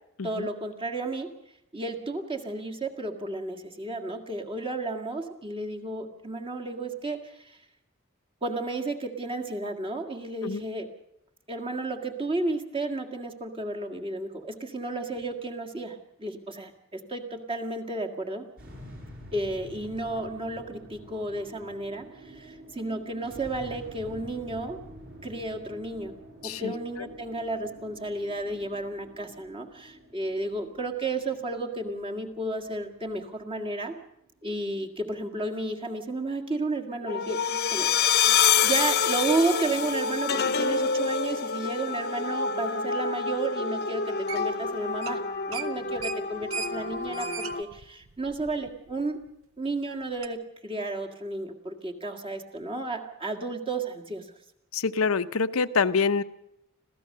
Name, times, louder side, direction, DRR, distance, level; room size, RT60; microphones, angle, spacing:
voice 1, 0.2-1.3 1.7-7.6 8.4-10.9 11.5-18.5 19.3-24.8 25.2-26.1 26.4-34.0 34.4-45.2 45.5-49.2 49.6-54.3, right 2 dB, 25° right, 2 dB, 1.8 m, -32 dB
sound 1, 18.6-35.0, right 1 dB, 45° right, 8.0 m, -48 dB
voice 2, 26.4-26.7 38.3-38.4 54.7-56.2, left 5 dB, 85° left, 12 dB, 0.7 m, -26 dB
sound 2, 37.1-47.6, left 6 dB, 50° left, 0.9 m, -27 dB
sound 3, 44.3-44.7 44.9-45.2 45.5-48.9 49.3-49.4 50.2-50.3, right 6 dB, 70° right, 0.9 m, -37 dB
26.0 x 15.5 x 6.6 m, 0.82 s
head